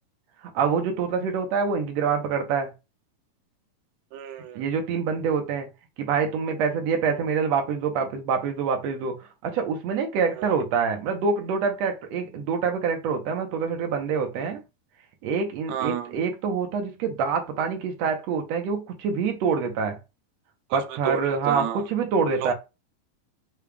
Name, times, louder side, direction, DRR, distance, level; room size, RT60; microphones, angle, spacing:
voice 1, 0.5-2.7 4.5-5.7 6.0-9.2 9.4-14.6 15.2-20.0 20.7-22.5, right 5 dB, 70° right, 1.7 m, -26 dB
voice 2, 4.1-4.6 10.4-10.5 15.7-16.2 21.0-21.9 22.3-22.5, right 10 dB, 85° right, 1.5 m, -31 dB
6.6 x 2.4 x 3.4 m
omnidirectional pair, 3.9 m